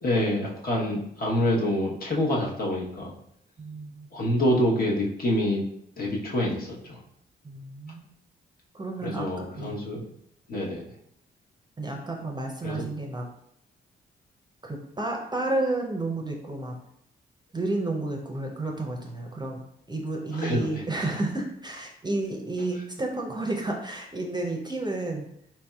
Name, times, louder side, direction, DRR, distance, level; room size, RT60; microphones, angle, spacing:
voice 1, 0.0-3.1 4.1-5.6 6.0-7.0 9.0-10.0 10.5-10.8 12.6-12.8 20.3-20.8, left 1 dB, 45° left, -3 dB, 1.0 m, -26 dB
voice 2, 3.6-4.1 7.4-8.1 8.7-9.8 11.8-13.2 14.6-16.8 17.5-19.6 19.9-25.3, right 2 dB, 20° right, 1 dB, 0.6 m, -31 dB
4.2 x 2.6 x 2.3 m, 0.73 s
cardioid pair, 65°, 21 cm